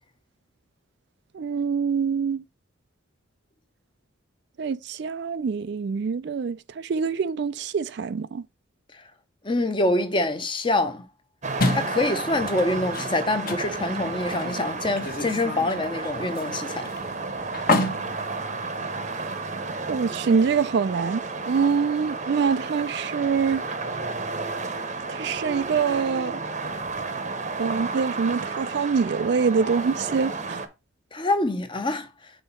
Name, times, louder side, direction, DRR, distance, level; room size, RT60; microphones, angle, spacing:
voice 1, 1.3-2.4 4.6-8.4 19.9-21.2 21.5-23.6 25.1-26.4 27.6-30.6, right 5 dB, 55° right, 0.3 m, -25 dB
voice 2, 9.4-11.0 11.7-16.9 31.1-32.1, left 2 dB, 25° left, 0.7 m, -25 dB
sound 1, 11.4-30.7, right 3 dB, 35° right, 0.8 m, -32 dB
sound 2, 11.6-19.3, left 2 dB, 45° left, 1.0 m, -31 dB
5.6 x 3.9 x 5.7 m
head